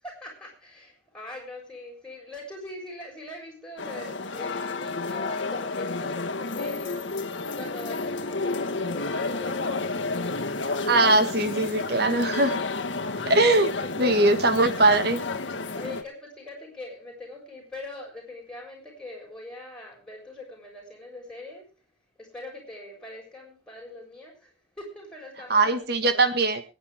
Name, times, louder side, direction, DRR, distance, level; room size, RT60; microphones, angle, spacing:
voice 1, 0.0-10.9 13.0-14.2 15.7-21.6 22.2-26.4, left 2 dB, 5° left, -1 dB, 6.8 m, -42 dB
sound 1, 3.8-16.0, left 3 dB, 90° left, 1.4 m, -31 dB
voice 2, 10.9-12.6 13.3-13.7 14.0-15.2 25.5-26.6, right 2 dB, 60° right, 9 dB, 1.6 m, -21 dB
24.5 x 9.7 x 3.5 m, 0.30 s
head